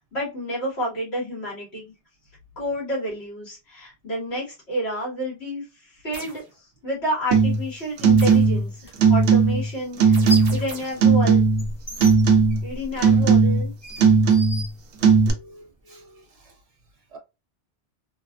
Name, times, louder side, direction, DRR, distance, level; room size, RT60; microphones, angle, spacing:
voice 1, 0.0-1.9 2.6-10.2 10.5-11.4 12.6-13.7, equal, 70° left, 1.7 m, -30 dB
sound 1, 6.1-6.4 8.2-8.5 10.1-11.1, right 2 dB, 60° right, 1.1 m, -39 dB
sound 2, 7.3-7.7 8.0-8.7 9.0-9.7 10.0-10.7 11.0-11.7 12.0-12.7 13.0-13.7 14.0-14.7 15.0-15.3, right 5 dB, 80° right, 0.9 m, -17 dB
sound 3, 8.8-8.9 10.0-10.6 11.0-15.4, left 1 dB, 20° left, 0.6 m, -35 dB
voice 2, 15.3-16.6 17.1-17.2, right 2 dB, 35° right, 0.8 m, -48 dB
3.3 x 2.3 x 2.2 m
omnidirectional pair, 1.1 m